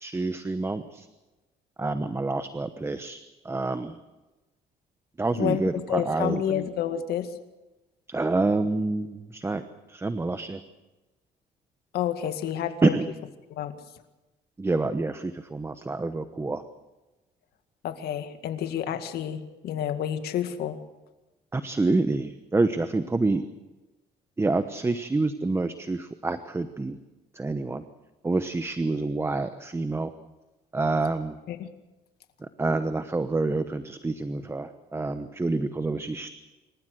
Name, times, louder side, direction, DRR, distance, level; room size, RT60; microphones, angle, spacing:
voice 1, 0.0-1.1 1.8-4.0 5.2-6.7 8.1-9.6 9.9-10.6 12.8-13.1 14.6-16.6 21.5-23.4 24.4-27.0 27.3-27.8 28.2-30.1 30.7-31.4 32.4-36.4, right 3 dB, 15° right, 10 dB, 1.0 m, -27 dB
voice 2, 5.9-7.3 11.9-12.9 13.5-13.7 17.8-20.8 31.5-31.7, left 10 dB, 70° left, 8 dB, 2.0 m, -29 dB
26.5 x 14.5 x 7.9 m, 1.1 s
cardioid pair, 110°, 17 cm